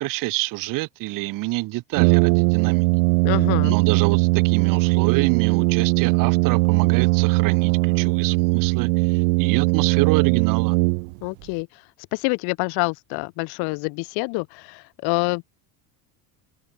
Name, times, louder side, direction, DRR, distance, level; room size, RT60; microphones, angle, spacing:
voice 1, 0.0-2.8 3.6-10.8, right 21 dB, 45° right, 1.4 m, -27 dB
Brass instrument, 1.9-11.4, right 30 dB, 75° right, 1.4 m, -19 dB
voice 2, 3.2-3.8 11.2-11.7 12.1-15.6, left 30 dB, 55° left, 1.4 m, -26 dB
cardioid pair, 165°, 45 cm